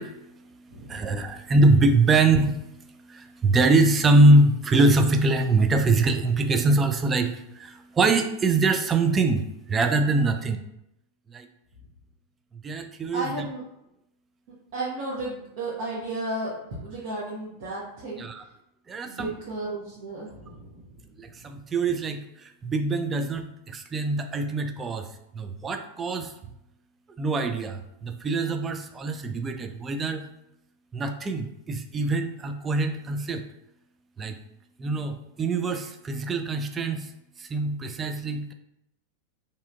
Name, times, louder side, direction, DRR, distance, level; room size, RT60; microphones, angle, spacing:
voice 1, 0.0-10.6 11.3-11.5 12.6-13.5 18.2-18.4 18.9-19.4 21.2-26.3 27.2-30.2 30.9-33.4 34.2-34.4 34.8-37.1 37.4-38.5, right 2 dB, 20° right, 6 dB, 0.3 m, -24 dB
voice 2, 0.7-1.1 13.1-13.6 14.7-18.2 19.0-20.9, right 2 dB, 50° right, -8 dB, 1.0 m, -33 dB
3.2 x 2.7 x 2.5 m, 0.82 s
figure-of-eight pair, 90°, 0 cm